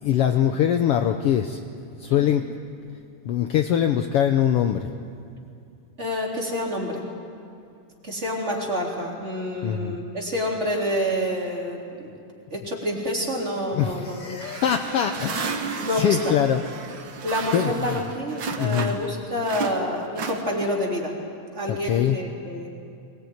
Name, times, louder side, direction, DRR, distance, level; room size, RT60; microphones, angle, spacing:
voice 1, 0.0-1.6 2.0-2.5 3.2-4.9 9.6-10.0 13.7-16.6 17.5-18.0 18.6-19.0 21.7-22.2, left 10 dB, 85° left, 7 dB, 1.3 m, -23 dB
voice 2, 6.0-7.0 8.0-12.1 12.5-14.4 15.8-16.3 17.2-21.1 21.5-22.7, equal, 20° right, -2 dB, 3.5 m, -28 dB
sound 1, 14.4-19.1 19.4-20.9, right 4 dB, 50° right, 1.5 m, -33 dB
23.0 x 19.5 x 9.4 m, 2.5 s
omnidirectional pair, 3.6 m